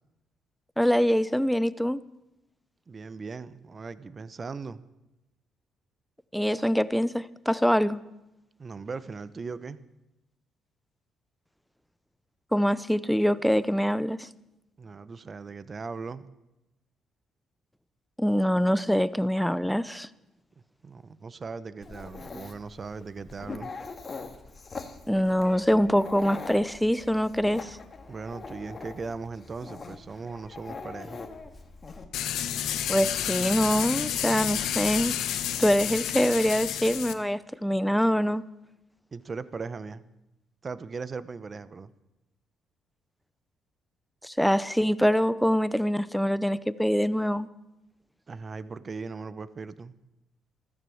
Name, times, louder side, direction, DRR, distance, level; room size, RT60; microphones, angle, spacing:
voice 1, 0.8-2.0 6.3-8.0 12.5-14.3 18.2-20.1 25.1-27.8 32.9-35.2 35.6-38.4 44.2-47.5, equal, ahead, 0.6 m, -24 dB
voice 2, 2.9-4.8 8.6-9.8 14.8-16.3 20.8-23.7 28.1-31.2 39.1-40.0 40.6-41.9 48.3-49.9, right 4 dB, 35° right, 0.8 m, -38 dB
Dog, 21.8-32.1, left 4 dB, 30° left, 2.0 m, -42 dB
sound 1, 32.1-37.1, left 10 dB, 75° left, 1.1 m, -30 dB
14.5 x 14.0 x 7.1 m
cardioid pair, 90°, 0 cm